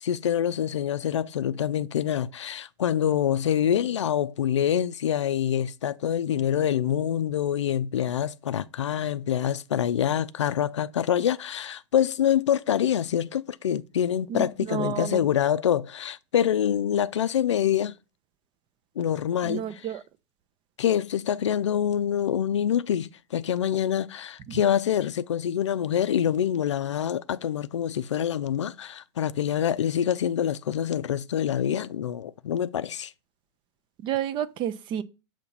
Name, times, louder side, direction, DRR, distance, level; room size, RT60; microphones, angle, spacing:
voice 1, 0.0-17.9 19.0-19.6 20.8-33.1, left 9 dB, 70° left, 0.4 m, -26 dB
voice 2, 14.3-15.2 19.4-20.0 24.5-24.6 34.0-35.0, right 9 dB, 30° right, 0.6 m, -30 dB
6.9 x 2.8 x 5.4 m
figure-of-eight pair, 95°, 15 cm